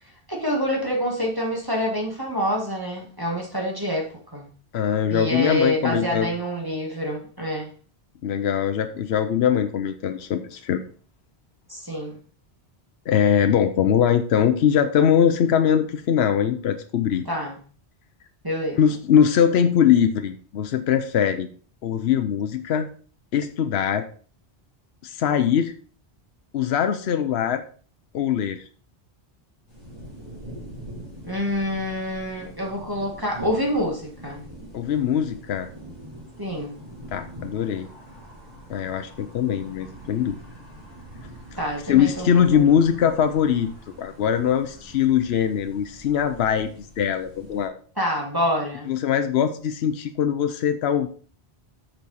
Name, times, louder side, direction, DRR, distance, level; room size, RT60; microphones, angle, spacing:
voice 1, 0.3-4.5 5.1-7.7 11.7-12.2 17.3-17.6 18.4-18.8 31.2-34.4 36.4-36.7 41.6-42.8 48.0-48.9, equal, 20° right, -1 dB, 1.8 m, -27 dB
voice 2, 4.7-6.3 8.2-10.8 13.1-17.3 18.8-21.5 21.8-22.9 23.3-24.0 25.0-25.7 26.5-27.6 28.1-28.6 34.7-35.7 37.1-37.9 38.7-40.4 41.9-43.7 44.0-47.7 48.9-51.1, left 8 dB, 75° left, 8 dB, 0.9 m, -21 dB
sound 1, 29.7-47.7, right 1 dB, 35° right, 3.2 m, -43 dB
8.5 x 6.6 x 4.1 m, 0.42 s
omnidirectional pair, 1.1 m